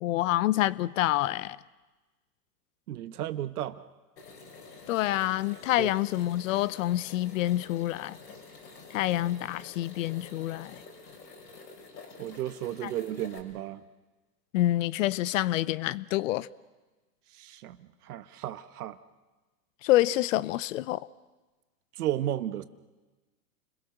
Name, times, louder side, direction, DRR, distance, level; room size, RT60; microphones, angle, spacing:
voice 1, 0.0-1.6 4.9-8.2 8.9-10.8 12.8-12.9 14.5-16.5 19.8-21.1, left 15 dB, 50° left, 0.8 m, -27 dB
voice 2, 2.9-3.8 5.8-5.9 12.2-13.8 17.3-19.0 21.9-22.6, right 12 dB, 65° right, 1.4 m, -34 dB
sound 1, 4.2-13.4, left 4 dB, 85° left, 6.0 m, -49 dB
30.0 x 22.0 x 6.6 m
hypercardioid pair, 115°, 48 cm